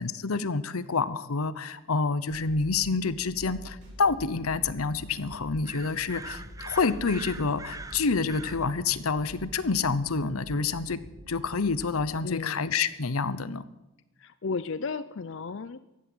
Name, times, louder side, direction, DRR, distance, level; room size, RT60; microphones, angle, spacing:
voice 1, 0.0-11.0 11.3-13.6, left 4 dB, 90° left, 16 dB, 0.9 m, -28 dB
sound 1, 2.3-12.0, equal, 85° right, 5.1 m, -46 dB
sound 2, 3.8-8.9, equal, 35° right, 6.2 m, -52 dB
sound 3, 5.7-8.6, right 3 dB, 15° right, 0.8 m, -42 dB
voice 2, 12.2-12.6 14.2-15.8, left 4 dB, 60° left, 14 dB, 0.5 m, -34 dB
15.5 x 11.0 x 7.9 m, 0.96 s
head